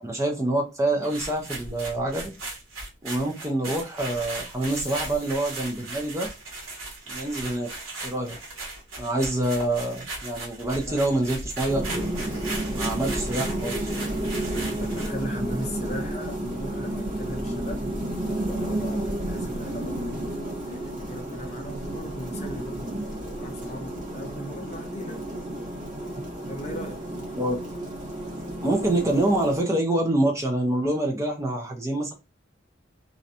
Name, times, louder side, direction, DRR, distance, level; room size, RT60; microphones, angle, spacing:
voice 1, 0.0-2.3 3.0-6.3 7.1-7.7 8.0-8.4 9.0-12.1 12.7-13.9 27.4-27.6 28.6-32.1, right 1 dB, 15° right, 0.3 m, -26 dB
sound 1, 1.0-15.2, right 2 dB, 85° right, 1.1 m, -37 dB
sound 2, 4.5-5.9, left 1 dB, 5° left, 0.9 m, -45 dB
sound 3, 11.7-29.6, right 1 dB, 40° right, 0.9 m, -31 dB
voice 2, 14.8-20.3 20.7-25.2 26.5-27.3, left 1 dB, 35° left, 0.6 m, -38 dB
2.5 x 2.1 x 2.6 m
head